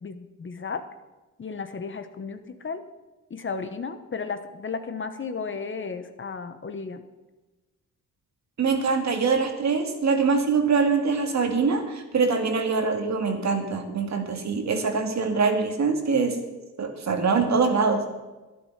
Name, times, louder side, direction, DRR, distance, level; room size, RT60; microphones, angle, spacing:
voice 1, 0.0-0.8 1.4-2.8 3.3-7.0, left 5 dB, 35° left, 9 dB, 1.1 m, -34 dB
voice 2, 8.6-16.4 16.8-18.0, right 4 dB, 50° right, 5 dB, 2.2 m, -23 dB
12.0 x 10.5 x 5.7 m, 1.2 s
cardioid pair, 80°, 34 cm